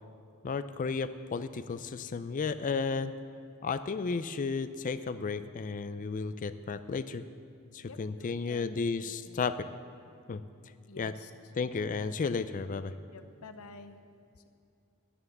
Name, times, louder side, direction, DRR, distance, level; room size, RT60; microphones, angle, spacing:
voice 1, 0.4-3.1 3.6-7.2 7.7-9.7 10.3-10.4 11.0-11.1 11.6-12.9, left 4 dB, 40° left, 12 dB, 0.4 m, -33 dB
voice 2, 7.8-9.5 10.9-11.3 13.1-14.0, left 3 dB, 85° left, 9 dB, 0.8 m, -50 dB
11.0 x 9.8 x 7.2 m, 2.5 s
head